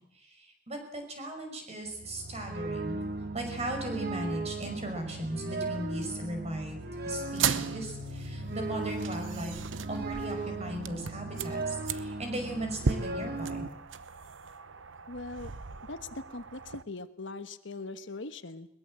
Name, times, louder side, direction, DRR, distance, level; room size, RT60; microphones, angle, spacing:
voice 1, 0.2-3.0 3.3-9.6 9.9-13.6, right 1 dB, 35° right, 4 dB, 5.9 m, -37 dB
sound 1, 1.9-13.7, right 2 dB, 55° right, 2.0 m, -37 dB
sound 2, 7.3-16.8, right 6 dB, 90° right, 0.9 m, -37 dB
voice 2, 15.1-15.5 15.8-18.7, left 3 dB, 75° left, 11 dB, 1.3 m, -41 dB
21.5 x 21.0 x 7.7 m, 0.77 s
head